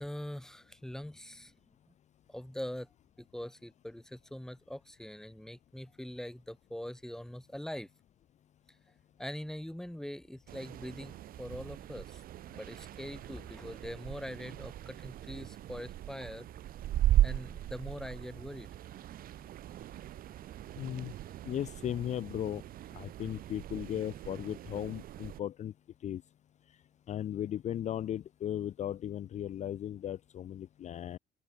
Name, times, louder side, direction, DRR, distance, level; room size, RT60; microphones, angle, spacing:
voice 1, 0.0-1.5 2.3-2.9 3.2-7.9 9.2-12.2 12.5-16.5 17.2-18.7, left 1 dB, 5° left, 3.1 m, -43 dB
sound 1, 10.5-25.4, right 13 dB, 60° right, 0.8 m, -37 dB
voice 2, 20.8-21.1 21.4-22.6 22.9-25.7 26.0-26.2 27.1-31.2, left 11 dB, 45° left, 0.5 m, -36 dB
cardioid pair, 110°, 17 cm